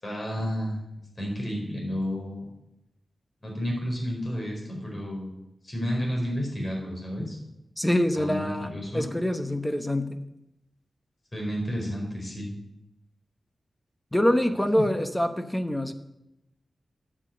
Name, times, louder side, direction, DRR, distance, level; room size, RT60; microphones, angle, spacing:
voice 1, 0.0-0.9 1.2-2.4 3.4-7.4 8.1-9.1 11.3-12.5 14.7-14.9, equal, 35° left, -1 dB, 4.6 m, -31 dB
voice 2, 7.8-10.2 14.1-15.9, left 1 dB, 10° left, 8 dB, 0.9 m, -25 dB
9.9 x 8.2 x 7.8 m, 0.88 s
wide cardioid pair, 135°, 0 cm